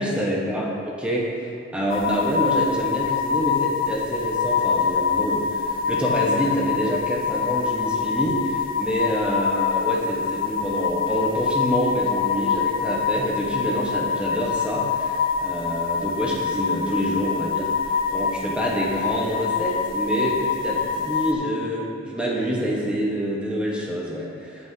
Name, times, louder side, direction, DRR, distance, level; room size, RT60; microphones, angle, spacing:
voice 1, 0.0-24.7, equal, 5° right, -4 dB, 1.2 m, -27 dB
sound 1, 1.9-21.3, left 6 dB, 45° left, 0.4 m, -25 dB
16.0 x 5.6 x 2.9 m, 2.5 s
head